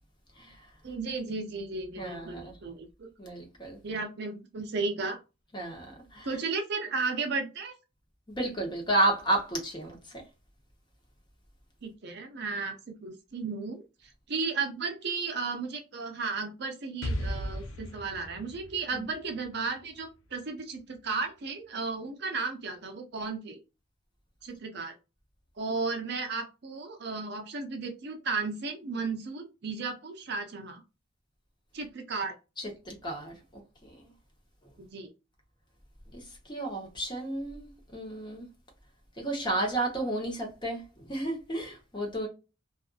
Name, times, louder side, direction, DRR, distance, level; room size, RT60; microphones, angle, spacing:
voice 1, 0.8-3.1 3.8-5.2 6.2-7.7 11.8-13.8 14.3-23.6 24.4-24.9 25.6-30.8 31.7-32.3 34.8-35.1, right 4 dB, 50° right, 0.5 m, -34 dB
voice 2, 2.0-2.5 3.2-3.8 5.5-6.3 8.3-10.0 18.9-19.1 32.6-33.4 33.8-34.1 36.1-38.5 39.2-42.3, right 1 dB, 20° left, 0.8 m, -32 dB
Explosion, 17.0-20.8, left 1 dB, 75° left, 0.4 m, -37 dB
2.5 x 2.5 x 2.3 m
head